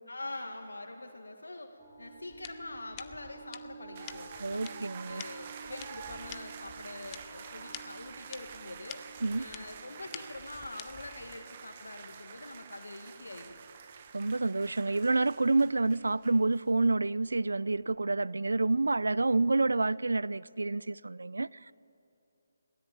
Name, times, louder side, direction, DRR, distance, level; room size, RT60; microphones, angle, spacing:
voice 1, 0.1-9.0 9.4-13.6, left 2 dB, 90° left, 1.7 m, -44 dB
sound 1, 1.8-19.8, right 4 dB, 5° left, 3.6 m, -55 dB
sound 2, 2.3-11.4, left 13 dB, 20° left, 0.7 m, -50 dB
sound 3, 3.9-16.6, right 7 dB, 35° right, 1.1 m, -48 dB
voice 2, 4.4-5.2 9.2-9.5 14.1-21.7, right 3 dB, 85° right, 0.4 m, -28 dB
21.0 x 16.5 x 9.1 m
figure-of-eight pair, 155°, 0 cm